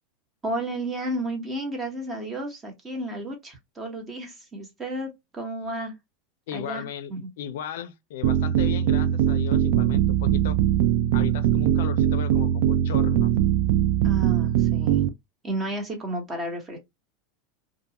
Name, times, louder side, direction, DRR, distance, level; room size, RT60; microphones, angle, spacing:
voice 1, 0.4-5.9 6.5-6.8 7.1-7.3 14.0-15.0 15.4-16.8, right 1 dB, 20° right, 1.1 m, -32 dB
voice 2, 6.5-10.6 11.1-13.3, left 9 dB, 80° left, 0.4 m, -36 dB
sound 1, 8.2-15.1, right 10 dB, 65° right, 0.3 m, -21 dB
2.5 x 2.2 x 2.8 m
supercardioid pair, 125°, 0 cm